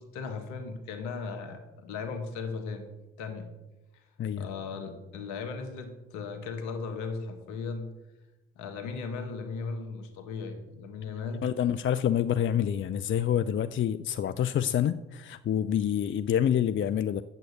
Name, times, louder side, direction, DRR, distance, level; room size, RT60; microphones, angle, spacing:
voice 1, 0.0-2.9 3.2-3.5 3.9-4.0 4.4-7.9 8.6-11.5, left 4 dB, 70° left, 6 dB, 1.7 m, -37 dB
voice 2, 11.4-17.2, left 9 dB, 40° left, 12 dB, 0.6 m, -27 dB
9.3 x 7.8 x 6.9 m, 1.0 s
hypercardioid pair, 50°, 30 cm